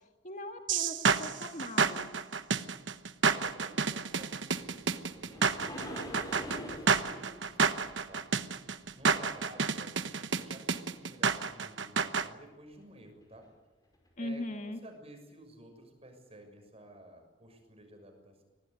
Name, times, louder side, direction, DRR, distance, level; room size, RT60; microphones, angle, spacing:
voice 1, 0.2-2.1 14.2-14.8, left 1 dB, 40° left, 5 dB, 1.8 m, -40 dB
sound 1, 0.7-12.3, right 5 dB, 70° right, 1.1 m, -29 dB
voice 2, 3.3-8.3 8.9-13.5 14.2-18.4, right 1 dB, 30° right, 5 dB, 6.6 m, -53 dB
sound 2, 4.2-9.4 13.3-13.4 14.1-14.2, left 1 dB, 20° left, 5.3 m, -45 dB
24.0 x 18.5 x 9.5 m, 1.1 s
head